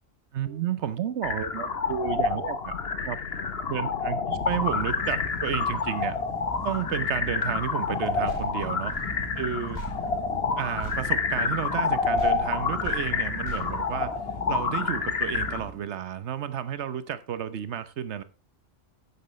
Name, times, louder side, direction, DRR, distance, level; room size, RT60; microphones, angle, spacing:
voice 1, 0.3-2.7 3.0-3.2 3.6-6.2 6.6-8.9 9.4-9.8 10.6-14.2 14.5-18.2, right 9 dB, 60° right, 1.1 m, -31 dB
sound 1, 1.2-15.6, left 5 dB, 50° left, 1.5 m, -28 dB
sound 2, 4.3-15.8, left 1 dB, 20° left, 1.2 m, -40 dB
sound 3, 8.2-11.9 12.2-14.6, right 4 dB, 40° right, 2.6 m, -43 dB
12.5 x 9.4 x 3.2 m
omnidirectional pair, 1.4 m